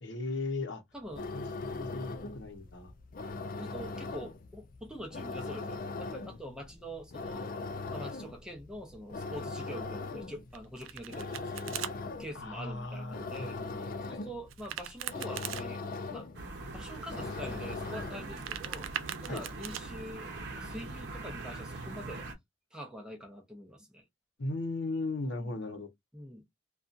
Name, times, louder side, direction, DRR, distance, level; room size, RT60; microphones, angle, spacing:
voice 1, 0.0-0.8 1.3-2.9 12.3-14.3 19.3-19.4 24.4-25.9, left 2 dB, 60° left, 0.8 m, -37 dB
voice 2, 0.9-1.3 1.7-2.1 3.6-7.5 7.9-11.8 12.2-13.6 14.1-15.8 16.1-16.3 16.7-18.9 19.2-22.3 22.7-24.0 25.2-25.6 26.1-26.4, equal, 5° right, 0.6 m, -45 dB
sound 1, 1.0-18.5, left 3 dB, 45° left, 0.4 m, -40 dB
Domestic sounds home sounds, 10.5-11.9 14.5-15.6 18.2-19.8, right 10 dB, 80° right, 0.4 m, -40 dB
sound 2, 16.3-22.3, right 2 dB, 55° right, 0.8 m, -42 dB
2.7 x 2.3 x 2.4 m
head